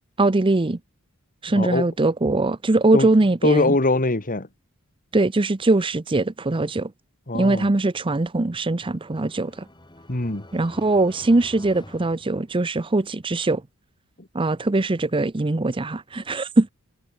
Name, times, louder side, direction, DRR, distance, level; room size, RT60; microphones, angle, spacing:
voice 1, 0.2-0.8 1.4-3.7 5.1-6.9 7.3-9.6 10.5-13.6 14.3-16.7, right 2 dB, 25° right, 0.6 m, -21 dB
voice 2, 1.5-1.9 2.9-3.1 3.4-4.5 7.3-7.7 10.1-10.4 14.2-14.3, left 2 dB, 40° left, 2.1 m, -22 dB
sound 1, 8.5-13.0, left 1 dB, 20° left, 5.1 m, -47 dB
head